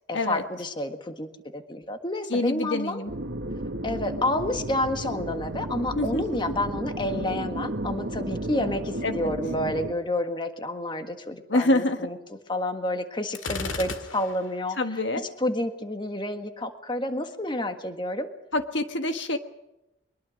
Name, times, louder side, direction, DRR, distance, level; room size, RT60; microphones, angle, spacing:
voice 1, 0.1-3.0 3.8-12.2 12.5-14.8 15.4-18.3, left 1 dB, 25° left, 7 dB, 1.6 m, -29 dB
voice 2, 2.3-3.1 5.9-6.2 9.0-9.3 11.5-12.0 14.8-15.3 18.5-19.4, left 2 dB, 65° left, 8 dB, 1.5 m, -26 dB
sound 1, 3.1-9.9, right 1 dB, 60° right, 1.5 m, -33 dB
Gunshot gunfire, 13.3-14.6, left 3 dB, 85° left, 2.0 m, -34 dB
23.0 x 21.5 x 6.3 m, 0.92 s
head